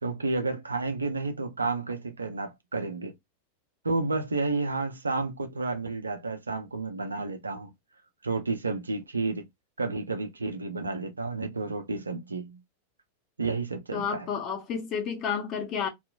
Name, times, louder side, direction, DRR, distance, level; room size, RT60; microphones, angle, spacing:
voice 1, 0.0-3.1 3.8-7.7 8.2-9.4 9.8-12.6 13.4-14.3, right 3 dB, 75° right, 0.6 m, -31 dB
voice 2, 13.9-15.9, left 7 dB, 35° left, 0.9 m, -31 dB
2.9 x 2.4 x 2.3 m
figure-of-eight pair, 90°, 0 cm